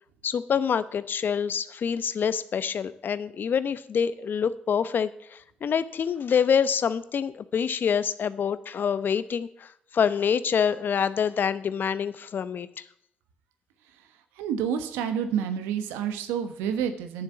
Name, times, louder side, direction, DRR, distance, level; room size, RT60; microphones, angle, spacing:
voice 1, 0.2-12.9, left 7 dB, 60° left, 15 dB, 0.8 m, -26 dB
voice 2, 14.4-17.2, right 8 dB, 90° right, 9 dB, 1.1 m, -29 dB
9.9 x 7.1 x 6.8 m, 0.69 s
supercardioid pair, 55°, 4 cm